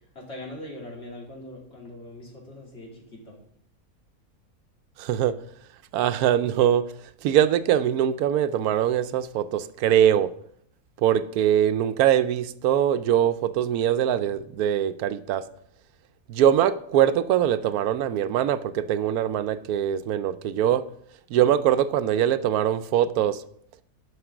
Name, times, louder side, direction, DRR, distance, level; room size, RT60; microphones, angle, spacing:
voice 1, 0.1-3.3, left 1 dB, 45° left, 3.0 m, -41 dB
voice 2, 5.0-5.4 5.9-6.8 7.2-10.3 11.0-15.5 16.3-20.8 21.3-23.4, right 10 dB, 85° right, 1.1 m, -22 dB
11.0 x 5.8 x 6.0 m
omnidirectional pair, 1.5 m